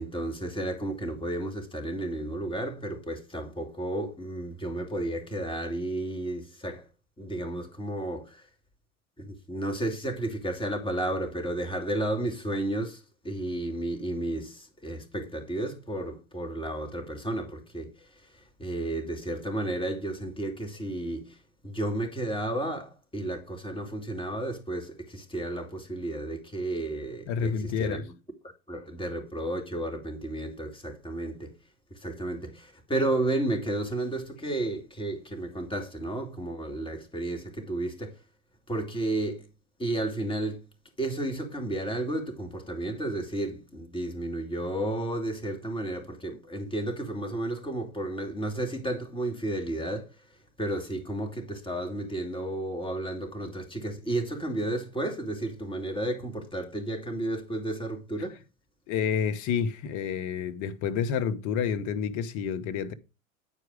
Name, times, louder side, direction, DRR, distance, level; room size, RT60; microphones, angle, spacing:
voice 1, 0.0-6.9 7.2-8.5 9.2-21.4 21.6-28.0 28.7-31.5 31.9-38.2 38.7-39.5 39.8-40.6 41.0-50.1 50.6-58.4, right 1 dB, 15° left, 2.7 m, -32 dB
voice 2, 27.3-28.0 58.9-62.9, left 7 dB, 50° left, 1.2 m, -29 dB
9.6 x 4.8 x 4.9 m
hypercardioid pair, 90°, 40 cm